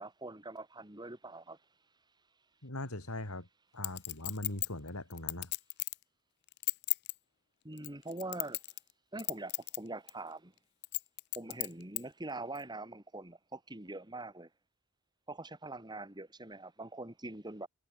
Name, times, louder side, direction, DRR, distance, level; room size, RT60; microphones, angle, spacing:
voice 1, 0.0-1.6 7.6-8.6 9.1-10.5 11.4-14.5 15.3-17.7, right 2 dB, 20° right, 2.5 m, -43 dB
voice 2, 2.6-3.5 3.7-5.5, left 1 dB, 90° left, 4.4 m, -40 dB
Chink clink, 3.8-6.0 6.5-7.1 7.8-8.9 9.2-9.8 10.1-10.2 10.8-12.0 12.6-12.7, left 22 dB, 50° left, 0.4 m, -35 dB
head